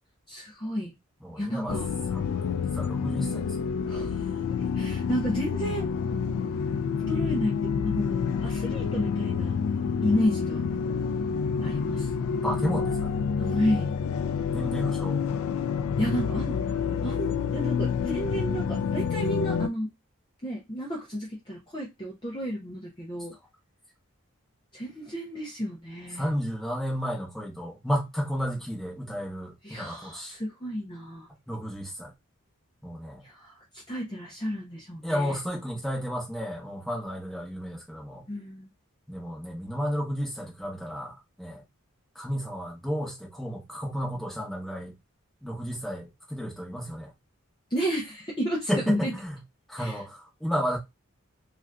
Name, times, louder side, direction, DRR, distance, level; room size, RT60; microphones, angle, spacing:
voice 1, 0.3-0.9 1.4-1.9 3.9-4.4 4.7-5.9 7.1-9.6 10.0-10.6 11.6-12.1 13.4-13.9 16.0-16.7 17.0-19.9 20.4-23.3 24.7-26.3 29.6-31.3 33.2-35.4 38.3-38.7 47.7-49.1 49.8-50.0, equal, 20° left, 0.6 m, -32 dB
voice 2, 1.2-1.8 2.1-3.6 10.1-10.2 11.5-11.8 12.3-13.2 14.5-15.2 26.1-30.4 31.5-32.1 32.8-33.2 35.0-38.2 39.1-41.6 42.1-44.9 45.4-47.1 48.7-49.4 49.7-50.8, equal, ahead, 1.0 m, -32 dB
sound 1, 1.7-19.7, left 6 dB, 75° left, 0.3 m, -28 dB
2.6 x 2.4 x 3.3 m
head